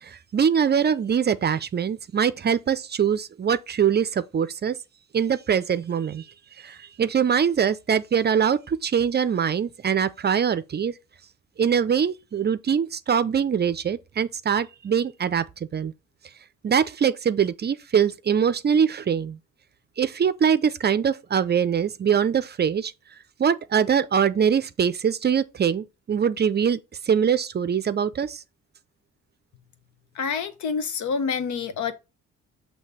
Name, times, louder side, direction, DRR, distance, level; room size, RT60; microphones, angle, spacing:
voice 1, 0.0-4.8 5.1-6.3 6.6-10.9 11.6-15.4 15.7-15.9 16.6-19.4 20.0-22.9 23.4-26.8 27.0-28.4, right 7 dB, 35° right, 0.5 m, -23 dB
voice 2, 30.1-31.9, left 6 dB, 70° left, 1.0 m, -27 dB
6.4 x 2.8 x 5.5 m
cardioid pair, 90°, 30 cm